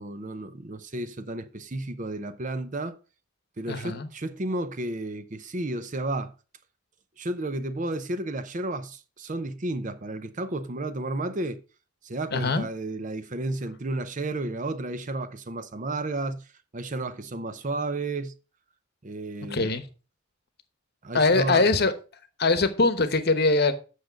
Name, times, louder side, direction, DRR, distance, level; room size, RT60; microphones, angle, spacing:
voice 1, 0.0-3.0 3.6-6.3 7.2-11.6 12.0-16.5 16.7-18.3 19.0-19.7 21.0-21.7, right 2 dB, 35° right, 0.6 m, -32 dB
voice 2, 3.7-4.1 12.3-12.7 19.5-19.8 21.1-21.9 22.4-23.7, left 3 dB, 50° left, 1.0 m, -22 dB
8.4 x 6.4 x 5.1 m
head